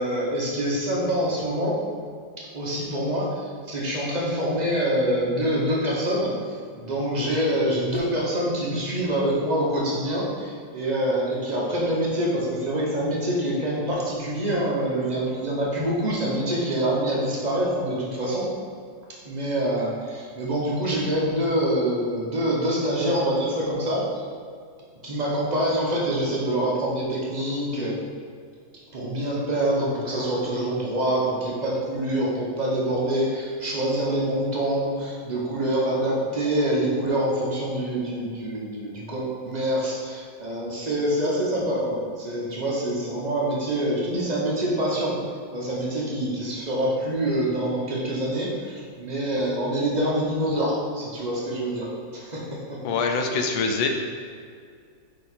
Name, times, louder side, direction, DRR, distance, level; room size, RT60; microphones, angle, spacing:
voice 1, 0.0-1.8 2.5-6.3 6.8-18.5 19.2-24.2 25.0-28.0 28.9-45.2 45.5-51.9 52.1-52.8, right 1 dB, 35° right, -5 dB, 0.7 m, -25 dB
voice 2, 52.8-53.9, left 4 dB, 85° left, 4 dB, 1.4 m, -24 dB
5.2 x 4.9 x 4.1 m, 2.2 s
omnidirectional pair, 2.2 m